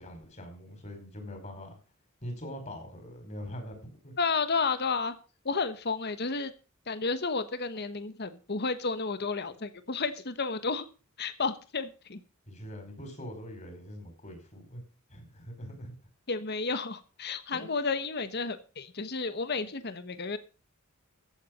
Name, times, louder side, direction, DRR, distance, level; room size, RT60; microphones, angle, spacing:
voice 1, 0.0-1.8 2.2-4.1 12.5-14.8 15.1-15.9 17.5-17.7, equal, 35° left, 5 dB, 5.1 m, -43 dB
voice 2, 4.2-5.1 5.4-6.5 6.9-10.8 11.2-12.2 16.3-20.4, left 4 dB, 50° left, 12 dB, 1.1 m, -31 dB
14.5 x 8.1 x 5.5 m, 0.34 s
head